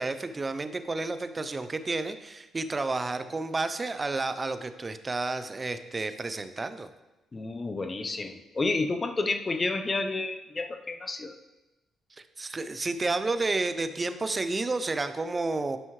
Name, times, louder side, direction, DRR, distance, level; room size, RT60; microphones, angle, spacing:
voice 1, 0.0-6.9 12.4-15.8, right 3 dB, 25° right, 10 dB, 0.6 m, -31 dB
voice 2, 7.3-11.4, left 3 dB, 30° left, 7 dB, 0.7 m, -30 dB
11.0 x 5.5 x 3.2 m, 1.0 s
cardioid pair, 90°, 0 cm